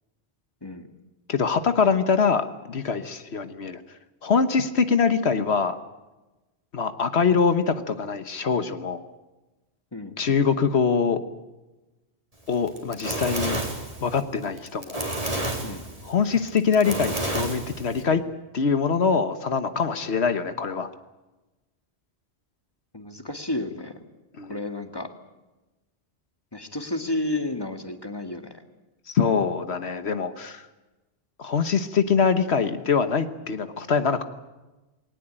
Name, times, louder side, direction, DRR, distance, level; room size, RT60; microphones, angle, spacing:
voice 1, 0.6-0.9 9.9-10.1 15.6-15.9 22.9-24.0 24.5-25.1 26.5-28.5, left 2 dB, 20° left, 7 dB, 2.0 m, -31 dB
voice 2, 1.3-3.8 4.2-5.8 6.7-9.1 10.2-11.2 12.5-13.6 14.0-15.0 16.0-18.2 18.5-20.9 24.4-24.6 29.1-30.7 31.4-34.2, left 5 dB, 70° left, 10 dB, 1.4 m, -23 dB
Fire, 12.5-18.0, right 1 dB, 30° right, 4.0 m, -30 dB
21.0 x 19.0 x 8.9 m, 1.1 s
omnidirectional pair, 1.1 m